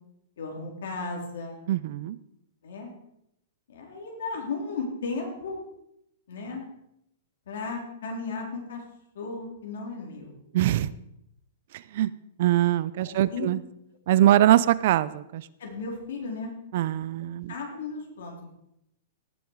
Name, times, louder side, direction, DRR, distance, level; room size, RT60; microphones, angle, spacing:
voice 1, 0.4-1.6 2.6-2.9 3.7-5.6 6.3-6.6 7.5-8.8 9.1-10.4 13.0-13.5 15.6-16.5 17.5-18.5, left 4 dB, 75° left, 1 dB, 3.9 m, -35 dB
voice 2, 1.7-2.2 10.5-10.9 11.9-12.1 12.4-13.6 14.1-15.5 16.7-17.5, right 13 dB, 50° right, 18 dB, 0.5 m, -22 dB
17.5 x 7.0 x 4.8 m, 0.79 s
hypercardioid pair, 160°, 0 cm